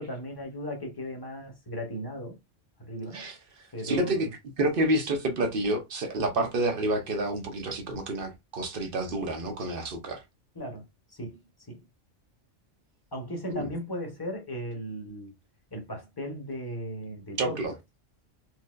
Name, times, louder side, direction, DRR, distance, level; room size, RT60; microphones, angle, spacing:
voice 1, 0.0-2.4 2.8-3.3 3.7-4.2 10.5-11.4 11.7-11.8 13.1-15.3 15.7-17.8, equal, 20° left, 1.1 m, -37 dB
voice 2, 3.8-4.3 4.6-10.2 13.5-13.7 17.4-17.7, right 1 dB, 50° right, 0.9 m, -28 dB
4.4 x 2.7 x 2.5 m
omnidirectional pair, 1.3 m